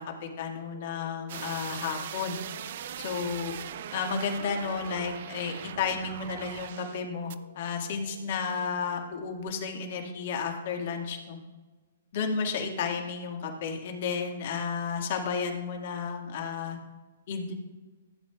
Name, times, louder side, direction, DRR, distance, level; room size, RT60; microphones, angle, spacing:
voice 1, 0.0-2.4 3.0-3.5 3.9-11.4 12.1-16.8 17.3-17.5, left 5 dB, 55° left, 2 dB, 1.8 m, -32 dB
sound 1, 0.6-11.0, left 3 dB, 80° left, 3.1 m, -53 dB
sound 2, 1.3-7.0 7.3-7.4, right 10 dB, 55° right, 0.4 m, -40 dB
15.5 x 8.5 x 2.4 m, 1.3 s
hypercardioid pair, 135°, 0 cm